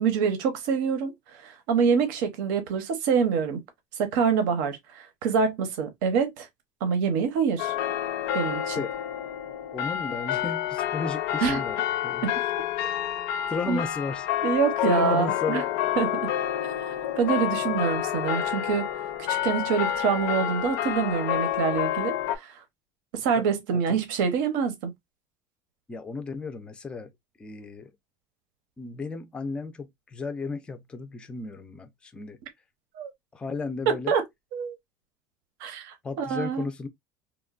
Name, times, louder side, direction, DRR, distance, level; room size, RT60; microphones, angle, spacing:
voice 1, 0.0-3.6 4.0-6.5 6.8-7.7 8.3-8.8 11.4-11.6 12.2-12.3 13.7-13.8 14.4-15.6 16.0-16.3 16.9-18.9 19.3-22.5 23.1-24.9 33.0-33.1 33.9-34.2 34.5-34.7 35.6-36.7, right 6 dB, 85° right, 0.7 m, -26 dB
sound 1, 7.6-22.4, left 11 dB, 70° left, 0.4 m, -29 dB
voice 2, 9.7-11.8 12.0-12.3 13.5-14.3 14.8-15.7 23.4-23.5 23.7-24.0 25.9-27.1 27.4-27.9 28.8-32.4 33.3-34.1 36.0-36.9, left 4 dB, 10° left, 0.3 m, -34 dB
3.0 x 2.1 x 2.3 m
cardioid pair, 165°, 10 cm